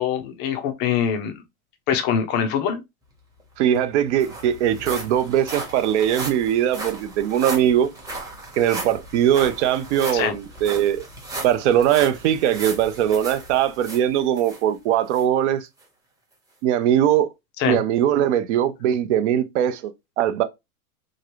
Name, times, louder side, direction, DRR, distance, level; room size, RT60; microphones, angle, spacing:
voice 1, 0.0-1.3 1.9-2.8 10.1-10.3 17.6-17.8, left 8 dB, 25° left, 0.4 m, -23 dB
sound 1, 3.4-3.5 3.7-14.6 15.1-15.2 15.8-15.9, right 2 dB, 10° right, 0.9 m, -36 dB
voice 2, 3.6-7.9 8.6-11.0 11.4-15.7 16.6-17.3 17.7-20.4, right 10 dB, 50° right, 0.7 m, -21 dB
3.0 x 2.5 x 2.9 m
hypercardioid pair, 130°, 44 cm